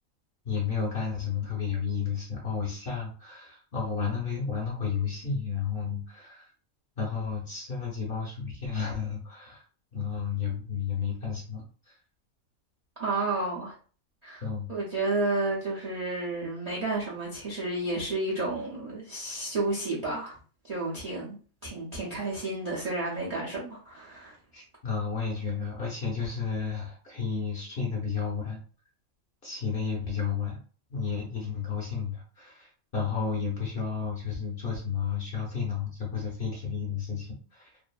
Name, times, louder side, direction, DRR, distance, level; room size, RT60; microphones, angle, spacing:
voice 1, 0.4-6.5 7.0-9.6 9.9-11.9 14.4-14.7 24.5-28.6 29.4-30.6 30.9-37.7, left 6 dB, 50° left, 0.7 m, -32 dB
voice 2, 13.0-13.7 14.2-14.4 14.7-20.4 20.6-24.3, right 2 dB, 50° right, 0.5 m, -31 dB
2.6 x 2.4 x 2.2 m
omnidirectional pair, 1.5 m